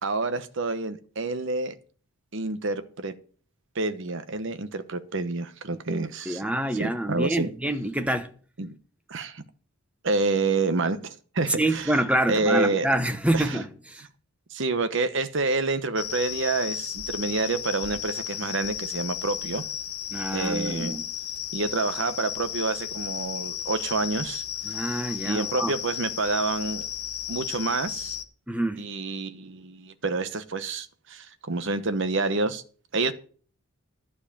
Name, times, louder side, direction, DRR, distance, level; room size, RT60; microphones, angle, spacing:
voice 1, 0.0-1.7 2.3-3.1 3.7-6.4 6.8-7.5 8.6-8.7 9.1-9.4 10.0-11.9 12.3-12.9 13.3-13.6 14.5-19.6 20.3-21.0 21.5-24.4 25.2-26.9 27.3-28.2 28.8-32.6 32.9-33.1, right 3 dB, 55° right, 0.9 m, -28 dB
voice 2, 6.3-8.3 11.5-14.0 20.1-21.0 24.6-25.7 28.5-28.8, right 1 dB, 5° right, 0.9 m, -27 dB
sound 1, 16.0-28.2, left 9 dB, 75° left, 1.0 m, -34 dB
11.5 x 4.8 x 8.5 m
head